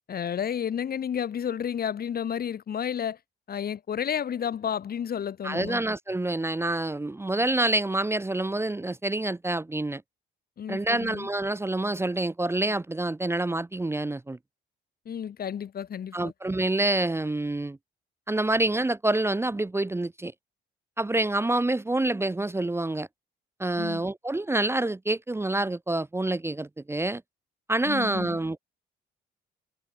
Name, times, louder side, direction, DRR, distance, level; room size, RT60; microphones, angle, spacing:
voice 1, 0.1-3.2 3.5-5.8 10.6-11.3 15.0-16.3 23.8-24.0 27.9-28.3, left 8 dB, 50° left, 1.3 m, -31 dB
voice 2, 5.4-10.0 10.7-14.4 16.1-17.8 18.3-20.3 21.0-23.1 23.6-27.2 27.7-28.6, right 2 dB, 10° right, 0.8 m, -27 dB
cardioid pair, 90°, 20 cm